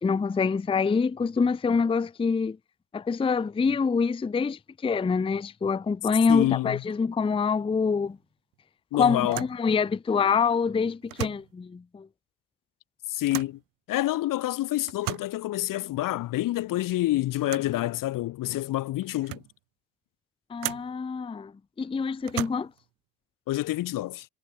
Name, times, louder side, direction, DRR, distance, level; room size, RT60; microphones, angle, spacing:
voice 1, 0.0-2.6 2.9-8.2 8.9-12.1 20.5-21.5 21.8-22.7, left 5 dB, 10° left, 0.7 m, -25 dB
voice 2, 6.3-6.8 8.9-9.4 13.1-13.6 13.9-19.4 23.5-24.3, left 16 dB, 45° left, 0.9 m, -28 dB
sound 1, 8.0-8.2 8.5-8.6 9.3-9.6 11.0-11.6 13.3-13.6 14.9-15.4 17.4-17.8 18.5-18.6 19.0-19.6 20.6-21.0 22.2-22.9, right 23 dB, 50° right, 0.5 m, -36 dB
hypercardioid pair, 70°, 47 cm